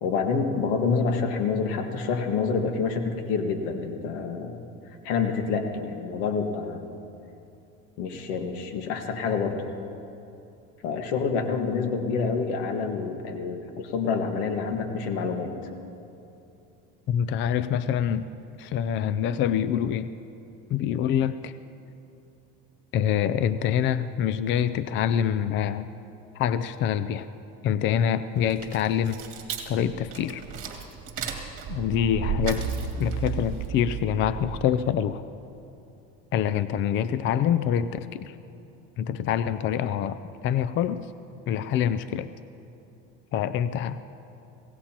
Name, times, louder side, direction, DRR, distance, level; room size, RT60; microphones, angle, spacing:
voice 1, 0.0-4.6 5.0-6.9 8.0-9.6 10.8-15.5, left 5 dB, 80° left, 5 dB, 1.7 m, -27 dB
voice 2, 17.1-18.3 18.6-20.1 20.7-21.5 22.9-25.9 26.3-27.3 27.6-29.2 29.7-30.4 31.7-32.6 33.0-35.2 36.3-38.4 39.0-41.1 41.5-42.3 43.3-44.0, left 9 dB, 40° left, 13 dB, 0.4 m, -25 dB
sound 1, 28.4-34.9, right 5 dB, 45° right, 2.3 m, -33 dB
23.5 x 18.0 x 2.9 m, 2.7 s
supercardioid pair, 125°, 31 cm